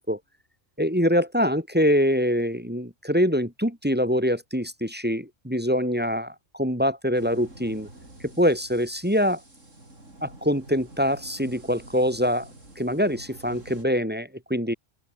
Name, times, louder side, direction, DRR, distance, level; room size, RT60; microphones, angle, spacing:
voice 1, 0.8-7.9 8.2-9.4 10.2-12.5 12.8-14.7, equal, 10° right, 3.9 m, -24 dB
sound 1, 7.1-13.8, right 1 dB, 85° right, 7.4 m, -48 dB
open air
omnidirectional pair, 1.3 m